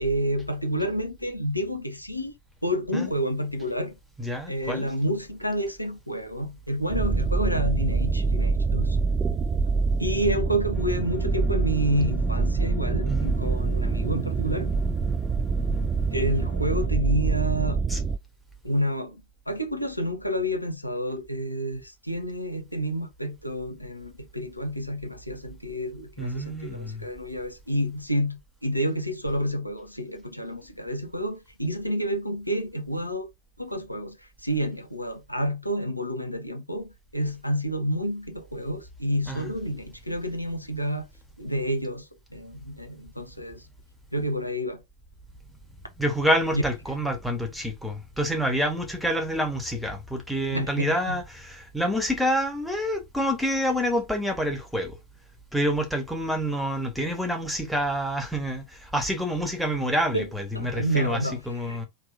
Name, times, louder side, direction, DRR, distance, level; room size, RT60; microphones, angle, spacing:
voice 1, 0.0-2.3 2.6-4.0 4.5-9.0 10.0-14.7 16.1-17.8 18.6-33.3 33.6-41.1 41.4-43.6 44.1-44.8 46.5-46.6 50.5-51.2 60.1-60.3 60.5-61.8, equal, 90° left, 0.8 m, -29 dB
voice 2, 4.2-4.9 13.0-13.3 17.9-18.0 26.2-27.0 39.3-39.5 46.0-55.0 55.5-61.9, equal, ahead, 1.4 m, -27 dB
sound 1, 6.9-18.2, right 4 dB, 25° right, 0.3 m, -25 dB
sound 2, 10.7-16.9, left 5 dB, 15° left, 0.7 m, -41 dB
4.9 x 3.2 x 2.6 m
figure-of-eight pair, 90°, 0 cm